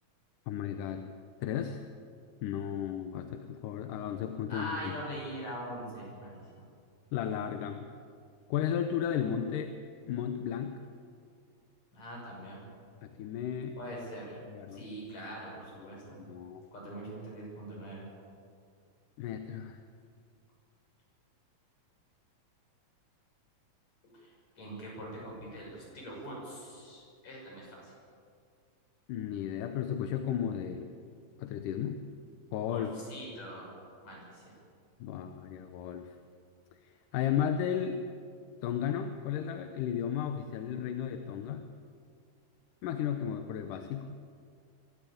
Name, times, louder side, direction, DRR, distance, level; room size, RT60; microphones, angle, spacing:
voice 1, 0.5-1.0 1.4-1.8 2.4-4.9 7.1-7.9 8.5-9.7 10.1-10.8 13.0-13.8 14.5-14.9 15.9-16.7 19.2-19.8 29.1-30.9 31.4-32.0 32.5-32.9 35.0-36.2 36.8-38.0 38.6-41.6 42.8-44.2, left 9 dB, 85° left, 7 dB, 2.4 m, -34 dB
voice 2, 4.5-6.7 11.9-12.6 13.8-14.4 14.7-16.2 16.7-18.1 24.0-27.9 32.7-33.7 34.0-34.5, equal, 60° left, -3 dB, 7.7 m, -43 dB
24.0 x 12.5 x 8.7 m, 2.3 s
omnidirectional pair, 3.6 m